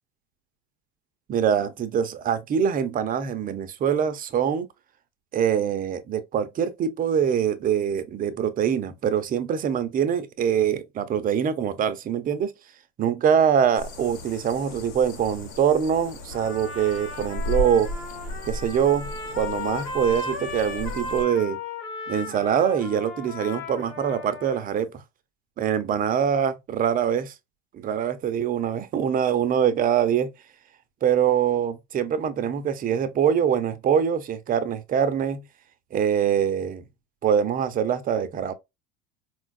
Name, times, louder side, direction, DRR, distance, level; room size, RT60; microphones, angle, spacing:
voice 1, 1.3-4.7 5.3-12.5 13.0-17.9 18.5-21.6 22.1-24.9 25.6-27.3 27.7-30.3 31.0-35.4 35.9-36.8 37.2-38.5, right 8 dB, 25° right, 0.5 m, -24 dB
sound 1, 13.7-21.2, left 1 dB, 60° left, 1.1 m, -35 dB
Trumpet, 16.3-24.8, left 3 dB, 75° left, 1.7 m, -36 dB
4.4 x 2.3 x 2.2 m
supercardioid pair, 120°, 31 cm